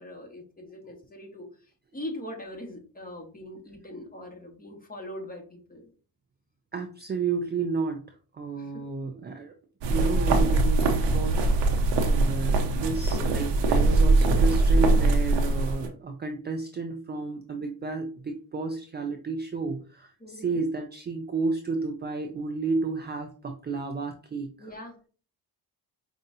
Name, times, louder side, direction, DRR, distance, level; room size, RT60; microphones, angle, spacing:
voice 1, 0.0-5.9 8.6-8.7 20.2-20.7 24.6-25.1, left 1 dB, 20° left, 1 dB, 1.4 m, -41 dB
voice 2, 6.7-8.0 8.3-9.6 9.9-24.7, right 4 dB, 25° right, 5 dB, 0.4 m, -31 dB
sound 1, 9.8-15.9, right 2 dB, 85° right, 0.9 m, -22 dB
5.1 x 2.4 x 2.7 m, 0.40 s
cardioid pair, 80°, 43 cm